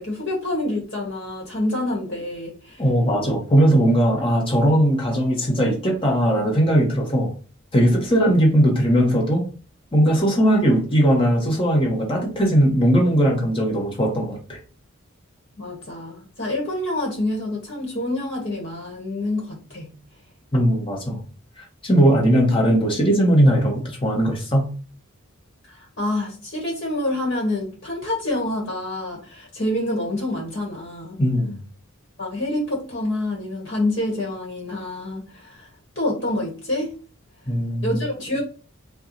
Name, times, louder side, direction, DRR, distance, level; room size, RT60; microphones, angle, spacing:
voice 1, 0.0-2.8 15.6-19.9 25.6-31.2 32.2-35.7 35.9-36.9 37.8-38.4, left 1 dB, 50° left, -2 dB, 1.3 m, -27 dB
voice 2, 2.8-7.3 7.7-9.4 9.9-14.6 20.5-21.2 21.6-24.7 31.2-31.6 37.5-37.9, equal, 25° left, 0 dB, 1.1 m, -19 dB
4.4 x 2.3 x 3.9 m, 0.38 s
head